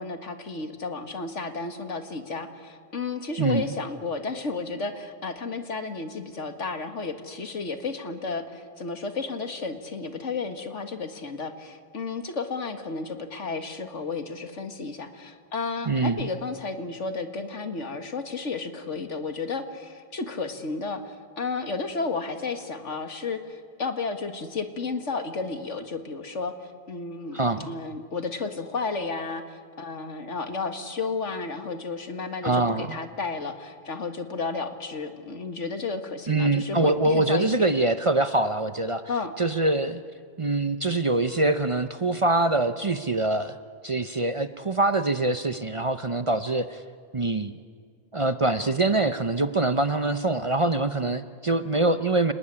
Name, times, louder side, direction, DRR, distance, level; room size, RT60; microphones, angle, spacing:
voice 1, 0.0-37.7 39.1-39.3, left 4 dB, 85° left, 7 dB, 2.2 m, -32 dB
voice 2, 15.9-16.3 27.3-27.7 32.4-33.0 36.3-39.0 39.4-40.0 40.4-43.5 43.8-46.8 47.1-47.5 48.1-52.3, right 2 dB, 30° right, 11 dB, 0.7 m, -24 dB
29.5 x 19.5 x 9.9 m, 2.1 s
omnidirectional pair, 1.2 m